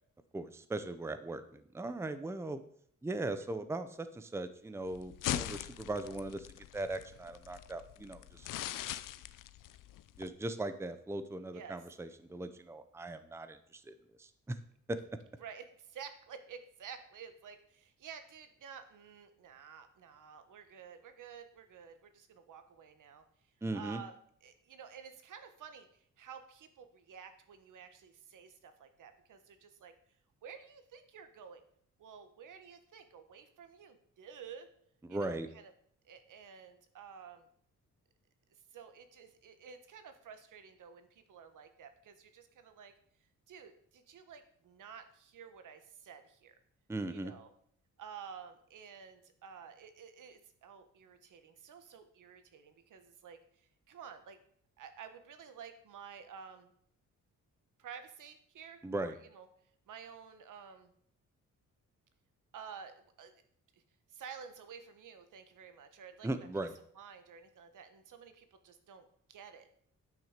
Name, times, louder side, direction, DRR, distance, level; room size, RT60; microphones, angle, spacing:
voice 1, 0.3-2.6 3.0-6.5 6.7-8.5 8.9-9.0 10.2-14.6 14.9-15.0 23.6-24.0 35.0-35.5 46.9-47.3 58.8-59.2 66.2-66.8, right 2 dB, 10° right, 11 dB, 0.6 m, -39 dB
sound 1, 4.8-10.3, left 12 dB, 85° left, 0.6 m, -41 dB
voice 2, 15.4-23.2 23.7-24.1 24.4-29.9 30.4-31.6 32.0-34.7 35.1-35.7 36.0-37.5 38.7-42.9 43.5-46.5 47.1-47.5 48.0-53.4 53.9-54.4 54.8-56.7 57.8-59.5 59.9-60.9 62.5-63.4 63.7-63.8 64.1-66.5 66.9-69.7, right 7 dB, 75° right, 9 dB, 1.4 m, -51 dB
10.5 x 6.2 x 6.7 m, 0.65 s
wide cardioid pair, 135°, 31 cm